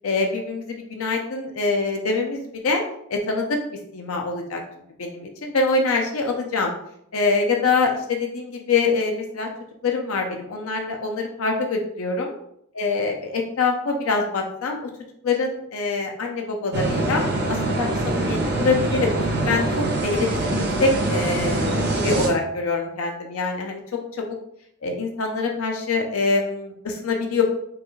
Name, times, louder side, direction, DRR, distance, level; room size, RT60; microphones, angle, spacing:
voice 1, 0.0-2.8 3.1-3.6 3.9-4.6 5.0-6.7 7.1-9.5 9.8-12.3 12.8-14.9 15.2-17.2 17.5-19.2 19.5-19.6 20.0-23.8 24.2-24.3 24.8-27.4, left 3 dB, 80° left, 2 dB, 0.6 m, -24 dB
sound 1, 16.7-22.3, right 2 dB, 50° right, 0.8 m, -24 dB
4.7 x 2.4 x 3.1 m, 0.74 s
head